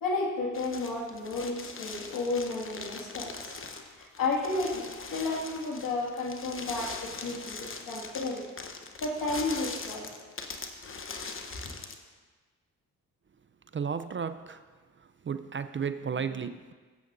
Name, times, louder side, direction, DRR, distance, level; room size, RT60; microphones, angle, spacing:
voice 1, 0.0-3.7 3.9-8.4 9.0-10.1, left 3 dB, 65° left, -2 dB, 2.1 m, -32 dB
sound 1, 0.5-12.0, left 4 dB, 35° left, 1.0 m, -41 dB
voice 2, 13.7-14.6 15.0-16.7, right 6 dB, 35° right, 11 dB, 0.5 m, -34 dB
15.5 x 7.9 x 2.6 m, 1.4 s
supercardioid pair, 55°, 36 cm